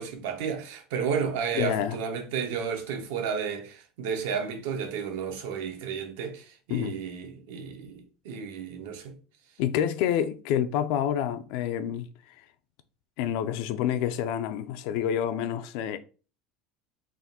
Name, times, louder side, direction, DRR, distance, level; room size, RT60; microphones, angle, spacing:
voice 1, 0.0-9.2, right 6 dB, 85° right, 1.0 m, -32 dB
voice 2, 1.6-2.0 6.7-7.0 9.6-12.1 13.2-16.0, left 9 dB, 60° left, 0.4 m, -28 dB
3.6 x 2.6 x 4.1 m
cardioid pair, 175°, 0 cm